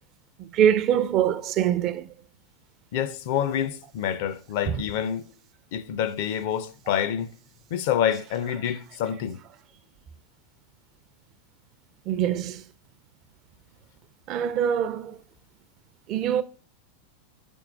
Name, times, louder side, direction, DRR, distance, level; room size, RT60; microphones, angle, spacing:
voice 1, 0.4-2.1 4.7-4.8 12.1-12.6 14.3-15.2 16.1-16.4, right 9 dB, 40° right, 0.5 m, -24 dB
voice 2, 2.9-5.3 5.7-7.3 7.7-9.4, left 9 dB, 50° left, 0.5 m, -27 dB
5.3 x 4.6 x 4.7 m
figure-of-eight pair, 85°, 0 cm